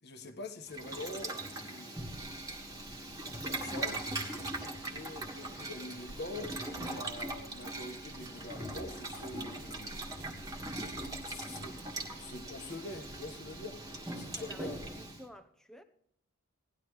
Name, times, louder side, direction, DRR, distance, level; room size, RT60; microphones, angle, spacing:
voice 1, 0.0-1.4 1.6-2.1 3.4-4.0 4.9-9.9 11.2-14.8, left 2 dB, 50° left, 1.5 m, -45 dB
Boiling, 0.7-15.2, right 2 dB, 15° right, 1.8 m, -41 dB
Bird vocalization bird call bird song, 2.0-14.9, equal, 70° left, 1.4 m, -55 dB
sound 1, 7.9-13.4, right 2 dB, 40° right, 1.7 m, -57 dB
voice 2, 14.4-15.8, equal, ahead, 0.9 m, -52 dB
18.0 x 11.5 x 3.2 m
head